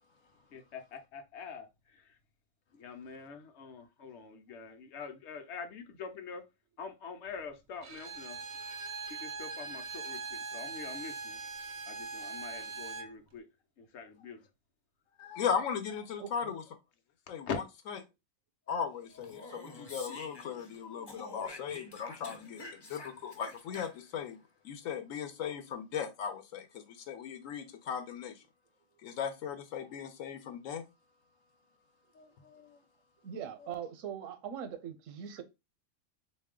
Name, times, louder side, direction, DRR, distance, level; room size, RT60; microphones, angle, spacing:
voice 1, 0.5-2.2 2.7-6.4 6.8-8.4 9.1-11.4 11.9-13.5 13.8-14.5 17.5-17.6, left 5 dB, 65° left, 0.9 m, -44 dB
Bowed string instrument, 7.8-13.1, right 4 dB, 55° right, 0.5 m, -41 dB
voice 2, 15.2-16.6 17.3-17.5 18.7-24.4 24.6-28.3 29.0-30.8 32.2-32.8, left 7 dB, 90° left, 1.1 m, -37 dB
voice 3, 16.2-16.5 33.2-35.4, right 8 dB, 80° right, 1.0 m, -41 dB
Speech, 19.1-20.8 21.1-24.2, left 2 dB, 30° left, 0.4 m, -48 dB
3.2 x 2.6 x 3.6 m
omnidirectional pair, 1.3 m